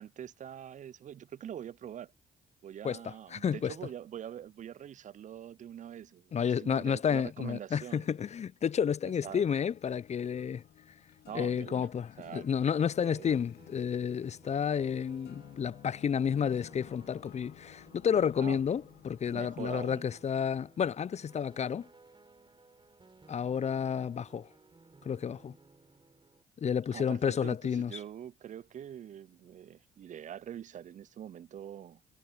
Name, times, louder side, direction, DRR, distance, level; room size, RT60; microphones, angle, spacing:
voice 1, 0.0-2.1 2.6-8.1 9.2-9.4 11.3-11.9 12.2-12.5 13.0-13.4 18.4-18.6 19.3-20.1 26.9-32.1, right 10 dB, 45° right, 0.4 m, -44 dB
voice 2, 2.8-3.7 6.3-10.6 11.3-21.9 23.3-24.5 25.0-25.5 26.6-28.0, left 7 dB, 40° left, 0.5 m, -31 dB
sound 1, 9.1-19.9, left 11 dB, 60° left, 0.9 m, -54 dB
sound 2, 12.9-26.4, right 3 dB, 25° right, 4.3 m, -59 dB
hypercardioid pair, 55°, 18 cm